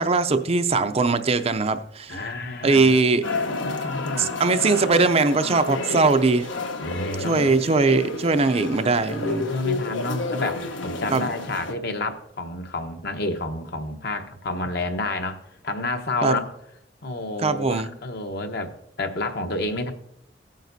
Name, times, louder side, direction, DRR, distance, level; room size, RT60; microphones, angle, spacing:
voice 1, 0.0-2.2 2.6-3.2 4.2-6.5 7.2-9.5 11.1-11.3 16.2-16.4 17.4-17.9, right 3 dB, 35° right, 9 dB, 0.5 m, -21 dB
voice 2, 2.1-3.1 3.6-4.3 6.8-7.6 9.1-16.5 17.0-19.9, left 2 dB, 60° left, 5 dB, 1.1 m, -30 dB
sound 1, 3.2-11.7, left 3 dB, 85° left, 1.2 m, -30 dB
16.5 x 9.2 x 2.7 m, 0.74 s
head